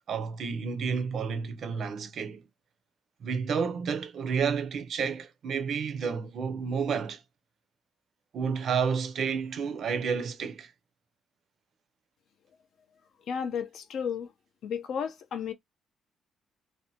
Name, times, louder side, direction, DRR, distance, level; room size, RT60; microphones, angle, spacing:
voice 1, 0.1-2.5 3.2-7.2 8.3-10.7, right 6 dB, 45° right, 0.5 m, -30 dB
voice 2, 13.3-14.3 14.6-15.5, left 7 dB, 55° left, 0.4 m, -33 dB
2.6 x 2.1 x 2.6 m
cardioid pair, 180°, 0 cm